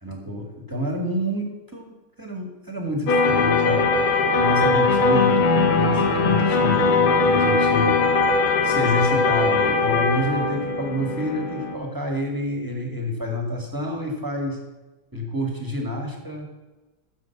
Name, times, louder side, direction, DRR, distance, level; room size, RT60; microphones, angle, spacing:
voice 1, 0.0-3.9 4.4-8.0 8.6-14.6 15.1-16.5, left 1 dB, 10° right, 1 dB, 1.8 m, -28 dB
sound 1, 3.1-11.7, left 3 dB, 90° left, 2.3 m, -20 dB
13.5 x 7.2 x 6.1 m, 1.1 s
omnidirectional pair, 2.3 m